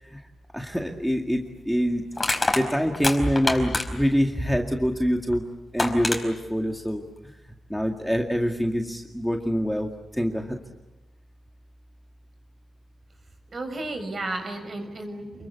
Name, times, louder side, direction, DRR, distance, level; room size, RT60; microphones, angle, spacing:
voice 1, 0.5-5.4 5.7-7.0 7.4-10.6, equal, ahead, 2 dB, 2.1 m, -25 dB
Crushing, 0.8-1.0 2.2-4.1 5.3-5.4 5.8-6.2, left 2 dB, 15° left, 4.8 m, -26 dB
voice 2, 13.5-15.5, right 2 dB, 40° right, 7 dB, 6.2 m, -33 dB
29.5 x 22.5 x 8.4 m, 1.0 s
wide cardioid pair, 115°, 0 cm